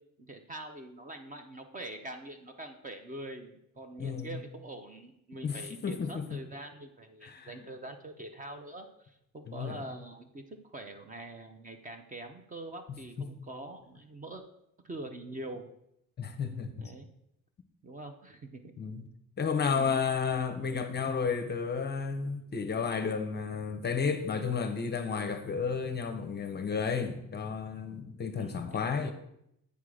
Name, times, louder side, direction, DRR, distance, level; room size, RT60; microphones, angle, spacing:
voice 1, 0.2-14.4 14.8-15.7 16.8-17.1 17.8-18.7 19.6-20.0 28.3-29.1, right 2 dB, 25° right, 0.6 m, -44 dB
voice 2, 4.0-4.4 5.4-6.4 7.2-7.7 9.5-9.8 12.9-13.5 16.2-16.9 18.8-19.1 19.4-29.1, left 5 dB, 30° left, 0.6 m, -32 dB
8.3 x 3.6 x 6.3 m
cardioid pair, 155°, 34 cm